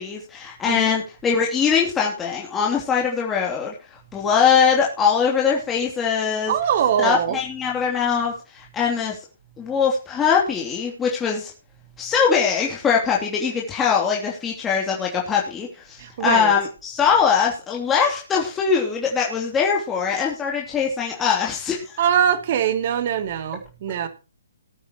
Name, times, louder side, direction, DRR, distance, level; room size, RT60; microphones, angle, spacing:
voice 1, 0.0-6.5 7.0-9.2 9.6-11.5 12.0-22.0, left 6 dB, 15° left, -2 dB, 2.9 m, -22 dB
voice 2, 6.5-7.4 16.0-16.5 22.0-24.1, right 9 dB, 45° right, 9 dB, 2.6 m, -22 dB
19.5 x 8.7 x 3.0 m, 0.32 s
figure-of-eight pair, 140°, 0 cm